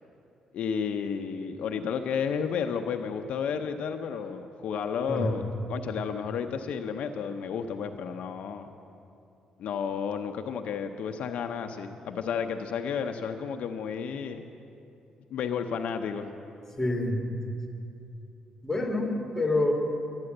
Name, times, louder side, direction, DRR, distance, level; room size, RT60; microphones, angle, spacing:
voice 1, 0.5-5.4 5.7-8.7 9.6-14.4 15.3-16.3, left 7 dB, 70° left, 6 dB, 0.7 m, -32 dB
voice 2, 16.8-17.2 18.6-19.7, left 2 dB, 5° left, 1 dB, 2.1 m, -27 dB
12.5 x 9.7 x 7.8 m, 2.7 s
cardioid pair, 120°, 2 cm